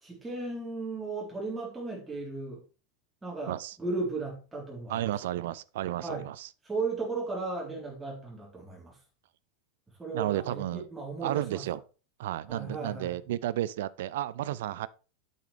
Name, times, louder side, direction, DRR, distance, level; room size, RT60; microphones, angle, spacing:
voice 1, 0.0-2.6 3.2-5.2 6.0-6.3 6.6-9.0 10.0-11.6 12.5-13.2, right 3 dB, 10° right, 3.9 m, -35 dB
voice 2, 4.9-6.5 10.1-10.9 11.2-11.8 12.2-14.9, right 13 dB, 55° right, 0.5 m, -32 dB
9.3 x 8.4 x 3.4 m
figure-of-eight pair, 90°, 0 cm